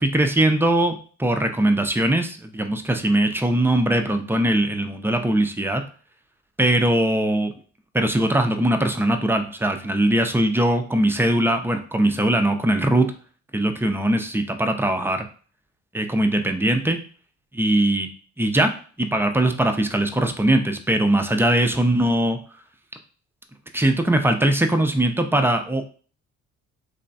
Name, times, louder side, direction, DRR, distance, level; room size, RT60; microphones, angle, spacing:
voice 1, 0.0-5.8 6.6-7.5 7.9-13.1 13.5-15.3 15.9-17.0 17.5-18.1 18.4-18.7 19.0-22.4 23.7-25.8, right 1 dB, 10° right, 5 dB, 0.4 m, -21 dB
3.3 x 2.2 x 3.9 m, 0.41 s
cardioid pair, 90°, 30 cm